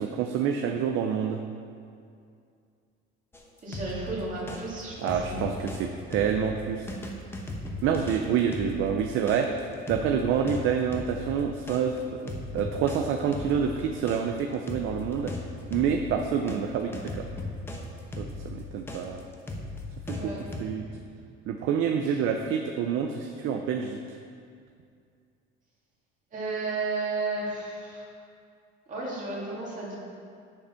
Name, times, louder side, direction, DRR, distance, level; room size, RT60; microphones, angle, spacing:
voice 1, 0.0-1.4 5.0-6.9 7.8-9.5 9.9-12.2 12.5-15.3 15.7-17.3 18.2-19.2 20.1-20.3 20.6-20.8 21.5-24.0, right 7 dB, 70° right, 3 dB, 0.6 m, -27 dB
sound 1, 3.3-5.8 6.1-16.6 16.9-20.6, left 2 dB, 10° left, 0.9 m, -37 dB
voice 2, 3.6-5.5 20.1-20.4 22.0-22.2 26.3-28.1 28.9-30.0, right 3 dB, 40° right, -5 dB, 2.3 m, -33 dB
7.9 x 7.2 x 5.6 m, 2.3 s
cardioid pair, 155°, 21 cm